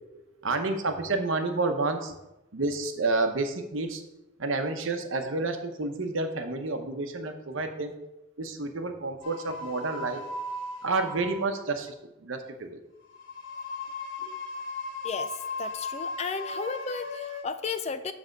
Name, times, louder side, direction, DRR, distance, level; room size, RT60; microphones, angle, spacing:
voice 1, 0.1-2.1 2.5-4.0 4.4-7.9 8.4-10.3 10.8-12.8 14.2-14.3, right 3 dB, 70° right, 6 dB, 0.9 m, -30 dB
sound 1, 9.2-11.7 13.0-17.4, left 2 dB, 65° left, 1.5 m, -37 dB
voice 2, 15.6-18.1, left 5 dB, 30° left, 11 dB, 0.4 m, -33 dB
7.6 x 3.4 x 6.5 m, 0.94 s
head